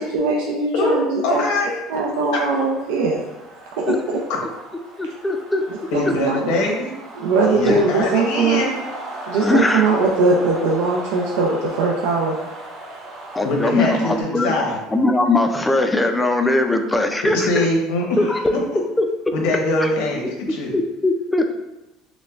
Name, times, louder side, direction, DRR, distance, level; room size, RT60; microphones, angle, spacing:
voice 1, 0.0-1.4 1.9-3.2 3.8-4.2 5.9-6.5 7.2-8.6 9.3-12.5, right 3 dB, 85° right, -2 dB, 0.5 m, -20 dB
voice 2, 1.2-1.7 5.9-6.9 7.4-8.8 13.4-14.8 17.2-18.6 19.3-20.7, left 2 dB, 75° left, 0 dB, 0.9 m, -22 dB
sound 1, 1.5-14.2, right 2 dB, 45° right, 1.1 m, -37 dB
voice 3, 5.0-5.6 7.7-7.8 9.4-9.9 13.3-14.5 14.9-17.7 18.2-18.5 19.0-19.1 19.8-19.9 20.5-21.6, left 2 dB, 10° left, 6 dB, 0.3 m, -20 dB
6.0 x 2.2 x 2.4 m, 0.96 s
cardioid pair, 135°, 0 cm